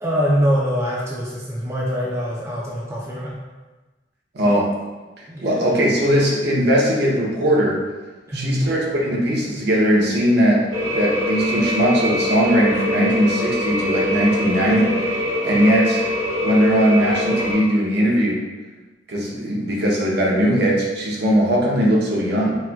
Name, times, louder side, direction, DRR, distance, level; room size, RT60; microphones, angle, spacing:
voice 1, 0.0-3.4 5.3-5.8 8.3-8.6, equal, 15° right, -5 dB, 0.4 m, -23 dB
voice 2, 4.3-4.7 5.4-7.8 8.3-16.0 16.4-18.4 19.1-22.6, equal, 60° right, -3 dB, 0.7 m, -19 dB
sound 1, 10.7-17.5, left 1 dB, 85° right, 1.5 m, -23 dB
4.2 x 2.2 x 2.2 m, 1.2 s
head